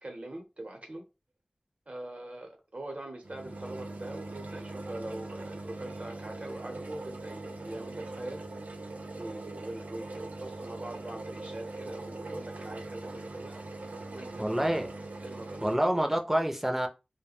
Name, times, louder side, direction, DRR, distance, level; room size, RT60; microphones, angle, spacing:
voice 1, 0.0-1.0 1.9-8.4 9.1-13.6 14.1-14.7 15.2-16.2, right 1 dB, 60° right, 0.8 m, -42 dB
sound 1, 3.2-15.7, right 2 dB, 90° right, 0.4 m, -41 dB
voice 2, 14.4-14.9 15.6-16.9, right 1 dB, 10° right, 0.6 m, -27 dB
2.2 x 2.2 x 3.4 m
wide cardioid pair, 45°, 2 cm